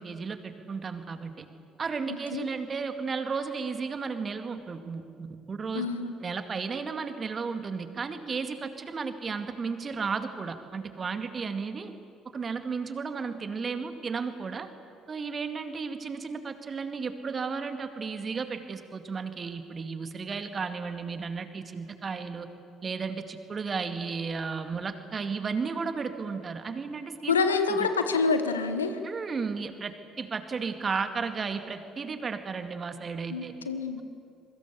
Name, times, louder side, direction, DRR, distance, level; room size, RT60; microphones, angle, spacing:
voice 1, 0.0-1.5 1.8-5.9 6.2-11.9 12.3-14.7 15.1-22.5 22.8-27.9 29.0-33.5, right 5 dB, 35° right, 8 dB, 2.1 m, -34 dB
voice 2, 5.7-6.1 27.3-29.0 33.3-34.0, left 4 dB, 80° left, 9 dB, 1.2 m, -27 dB
26.5 x 23.5 x 7.0 m, 2.4 s
figure-of-eight pair, 50°, 0 cm